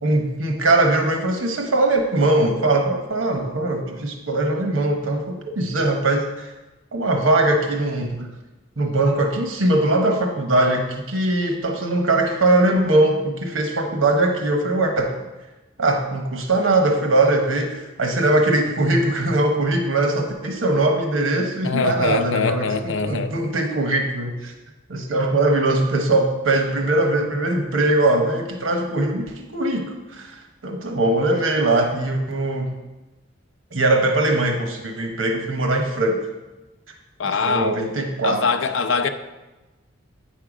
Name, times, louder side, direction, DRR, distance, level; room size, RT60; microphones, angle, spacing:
voice 1, 0.0-6.5 6.9-8.3 8.8-15.1 15.8-24.5 24.9-30.4 30.6-32.7 33.7-36.3 37.5-38.4, right 2 dB, 85° right, 3 dB, 1.0 m, -21 dB
voice 2, 21.6-23.3 37.2-37.8 38.2-39.1, left 4 dB, 70° left, 8 dB, 0.6 m, -23 dB
8.7 x 5.6 x 4.9 m, 1.1 s
head